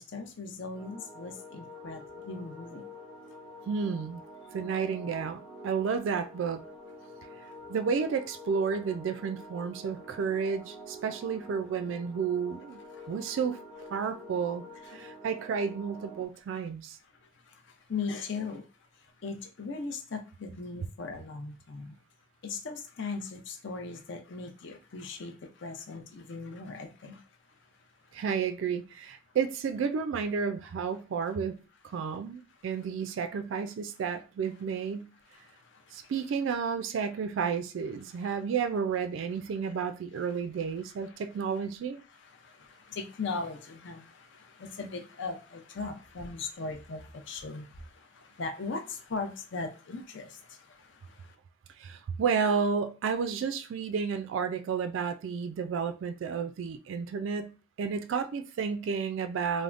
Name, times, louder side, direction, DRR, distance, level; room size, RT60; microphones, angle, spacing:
voice 1, 0.0-2.9 12.9-13.1 14.9-15.0 17.2-18.7 18.9-22.0 22.4-27.7 28.0-28.1 35.3-36.1 38.1-38.2 41.0-41.2 42.1-51.3, left 4 dB, 65° left, 0.6 m, -39 dB
sound 1, 0.7-16.3, equal, 10° right, 0.6 m, -47 dB
voice 2, 3.7-4.2 4.5-6.6 7.7-12.8 13.1-13.6 13.9-14.6 14.9-17.0 28.1-31.6 31.9-35.1 35.9-42.0 51.8-59.6, right 6 dB, 65° right, 0.3 m, -31 dB
3.3 x 2.1 x 2.4 m
head